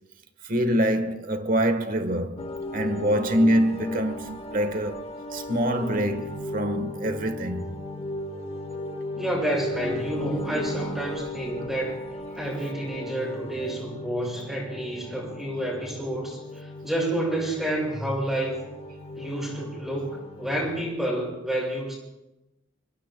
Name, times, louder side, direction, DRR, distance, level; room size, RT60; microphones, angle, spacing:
voice 1, 0.4-5.0 5.3-7.7, equal, 45° right, 1.3 m, -25 dB
sound 1, 2.4-20.8, left 1 dB, 30° left, 1.2 m, -36 dB
voice 2, 9.2-12.0 12.4-18.6 19.1-22.0, right 1 dB, ahead, 5.9 m, -29 dB
28.0 x 22.5 x 2.3 m
head